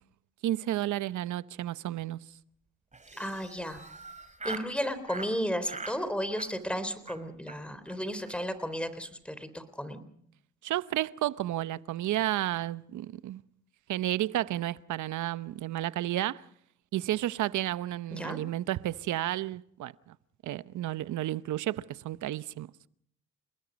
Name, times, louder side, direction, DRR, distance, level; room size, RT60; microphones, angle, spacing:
voice 1, 0.4-2.2 10.6-13.4 13.9-16.4 16.9-20.1 20.4-22.7, right 14 dB, 75° right, 0.9 m, -32 dB
Laughter, 2.9-4.7 5.1-5.3 5.6-6.0 6.3-6.8 7.1-7.2 7.5-7.6 7.9-8.0 8.2-8.4 8.6-8.9, right 3 dB, 25° right, 3.4 m, -42 dB
voice 2, 3.2-3.8 4.4-10.0 18.1-18.4, equal, 5° left, 3.8 m, -34 dB
30.0 x 20.0 x 5.3 m
cardioid pair, 90°, 30 cm